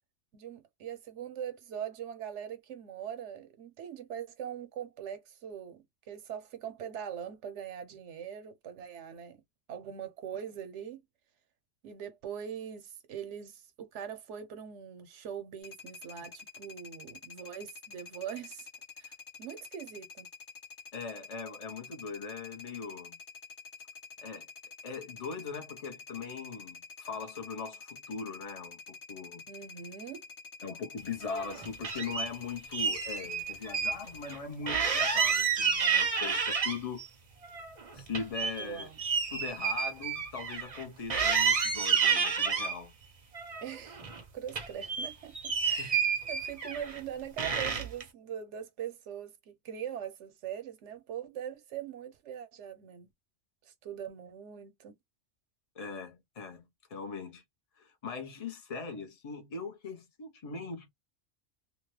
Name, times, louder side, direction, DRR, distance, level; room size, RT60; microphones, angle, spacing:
voice 1, 0.3-9.4 9.7-11.0 11.8-18.7 19.0-20.3 29.5-30.3 38.6-39.0 43.6-44.0 44.3-46.0 46.3-53.1 53.6-55.0, right 9 dB, 80° right, 1.0 m, -42 dB
sound 1, 15.6-34.3, left 4 dB, 55° left, 1.1 m, -48 dB
voice 2, 20.9-23.2 24.2-24.5 24.8-29.4 30.6-37.0 37.9-38.9 39.3-42.9 45.8-45.9 55.7-57.4 57.8-60.9, left 5 dB, 35° left, 0.8 m, -40 dB
sound 2, 31.2-32.3 32.7-33.9 34.3-34.4 34.7-37.1 37.4-40.8 41.1-42.8 43.3-44.2 44.5-47.0 47.4-48.0, right 6 dB, 40° right, 0.6 m, -30 dB
2.7 x 2.1 x 3.1 m
omnidirectional pair, 1.2 m